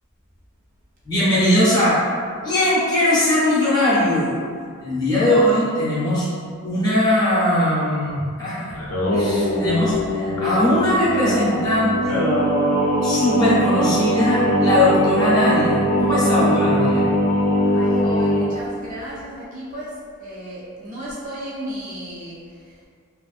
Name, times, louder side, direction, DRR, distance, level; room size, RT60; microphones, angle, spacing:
voice 1, 1.0-2.0 2.4-4.5 4.8-6.3 6.6-8.7 9.1-12.3 13.0-17.1, left 1 dB, 20° left, -10 dB, 0.6 m, -20 dB
Singing, 8.7-18.5, equal, 80° left, 0.5 m, -21 dB
voice 2, 17.6-22.9, equal, 35° right, -8 dB, 0.5 m, -34 dB
2.5 x 2.5 x 2.4 m, 2.1 s
head